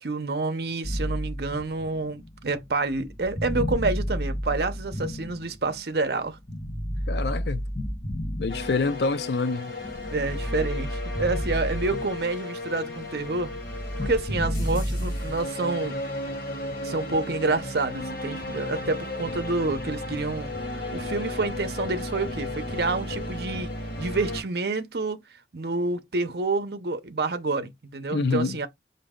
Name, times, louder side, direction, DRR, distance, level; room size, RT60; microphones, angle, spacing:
voice 1, 0.0-6.4 10.1-13.5 14.0-16.0 16.8-20.5 20.9-23.7 24.0-25.2 25.5-28.7, right 3 dB, 60° right, 0.7 m, -28 dB
Tribal memories, 0.8-5.9 6.5-9.1 9.6-12.5 12.7-15.4, equal, 25° left, 1.4 m, -31 dB
voice 2, 7.1-7.6 8.4-9.7 28.1-28.6, left 3 dB, 70° left, 0.5 m, -26 dB
sound 1, 8.5-24.4, left 1 dB, 55° left, 1.3 m, -34 dB
5.1 x 2.7 x 3.6 m
head